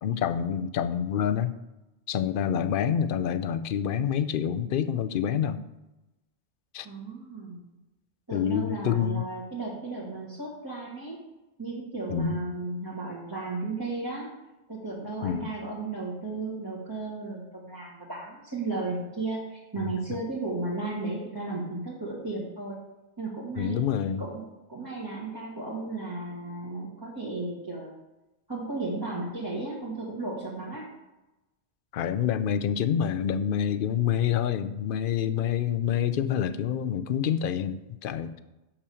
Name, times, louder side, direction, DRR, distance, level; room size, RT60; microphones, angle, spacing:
voice 1, 0.0-1.5 2.1-5.6 6.7-6.9 8.3-9.2 12.1-12.4 15.2-15.5 19.7-19.9 23.6-24.2 31.9-38.4, left 9 dB, 60° left, 11 dB, 0.7 m, -27 dB
voice 2, 6.8-7.6 8.3-11.2 11.6-14.3 14.7-22.8 23.2-23.8 24.2-24.4 24.7-28.0 28.5-30.9, right 3 dB, 20° right, -8 dB, 1.7 m, -34 dB
6.2 x 5.8 x 6.9 m, 1.0 s
omnidirectional pair, 1.1 m